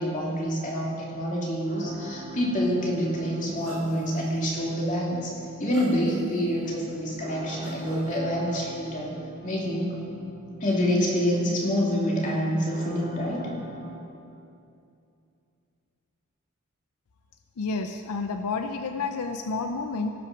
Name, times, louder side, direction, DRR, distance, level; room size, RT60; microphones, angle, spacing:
voice 1, 0.0-5.3 5.6-9.1 9.4-9.9 10.6-13.5, equal, 35° left, -3 dB, 2.5 m, -27 dB
sound 1, 1.6-14.0, right 2 dB, 30° right, 2.6 m, -45 dB
sound 2, 3.6-4.2 4.8-4.9 5.7-6.5 7.6-8.2, right 2 dB, 80° right, 1.5 m, -44 dB
voice 2, 17.6-20.1, left 4 dB, 85° left, 6 dB, 0.5 m, -30 dB
17.5 x 6.0 x 5.9 m, 2.6 s
head